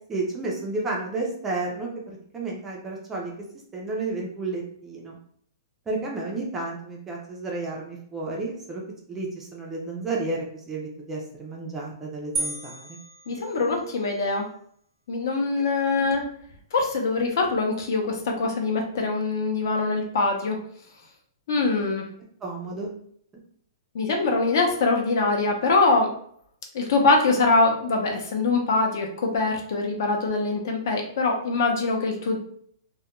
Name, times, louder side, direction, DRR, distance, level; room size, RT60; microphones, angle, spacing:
voice 1, 0.1-3.3 3.7-5.2 5.9-8.8 9.1-13.0 22.4-22.9, right 3 dB, 10° right, -2 dB, 0.3 m, -32 dB
sound 1, 12.4-14.1, right 3 dB, 70° right, 0.5 m, -34 dB
voice 2, 13.3-14.5 15.1-16.3 16.7-20.6 21.5-22.0 23.9-26.1 26.7-32.4, left 3 dB, 55° left, 2 dB, 0.6 m, -23 dB
2.3 x 2.1 x 2.9 m, 0.63 s
hypercardioid pair, 170°, 2 cm